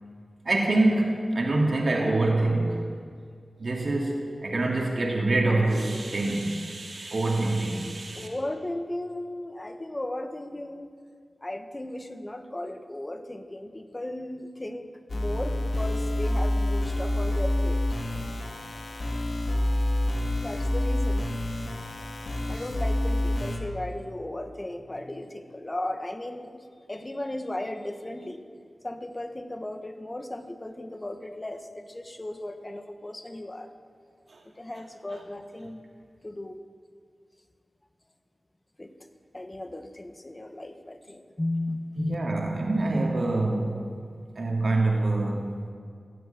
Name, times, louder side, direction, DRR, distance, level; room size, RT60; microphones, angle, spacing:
voice 1, 0.4-2.9 3.6-8.3 34.3-34.4 42.0-43.9 44.3-45.6, right 2 dB, 65° right, -1 dB, 2.6 m, -25 dB
voice 2, 8.1-10.9 11.4-17.8 20.4-21.3 22.5-28.4 28.8-33.7 34.6-35.8 36.2-36.6 38.8-38.9 39.3-42.1, left 1 dB, 30° left, 7 dB, 1.4 m, -36 dB
sound 1, 15.1-23.6, left 1 dB, 75° left, 2.2 m, -27 dB
16.0 x 9.4 x 9.2 m, 2.2 s
cardioid pair, 45°, 0 cm